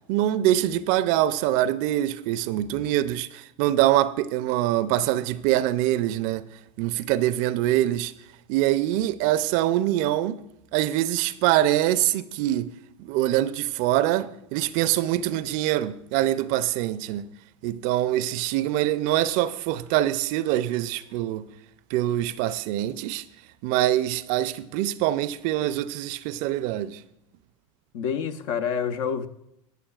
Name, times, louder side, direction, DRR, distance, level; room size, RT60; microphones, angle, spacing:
voice 1, 0.1-6.5 6.8-8.1 8.5-10.4 10.7-12.7 13.0-17.3 17.6-21.5 21.9-23.2 23.6-27.0, right 14 dB, 55° right, 0.5 m, -24 dB
voice 2, 27.9-29.3, left 7 dB, 65° left, 0.8 m, -27 dB
19.5 x 6.9 x 2.4 m
hypercardioid pair, 100°, 17 cm